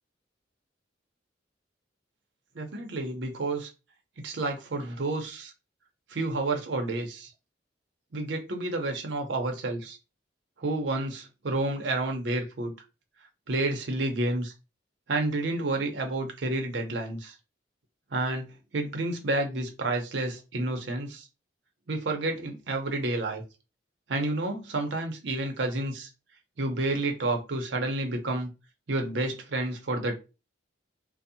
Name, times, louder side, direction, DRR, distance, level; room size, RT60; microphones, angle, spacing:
voice 1, 2.5-3.7 4.2-5.5 6.1-7.3 8.1-10.0 10.6-12.7 13.5-14.5 15.1-17.3 18.1-21.3 21.9-23.4 24.1-26.1 26.6-28.5 28.9-30.2, right 2 dB, 70° right, 0.6 m, -30 dB
2.6 x 2.0 x 2.6 m
head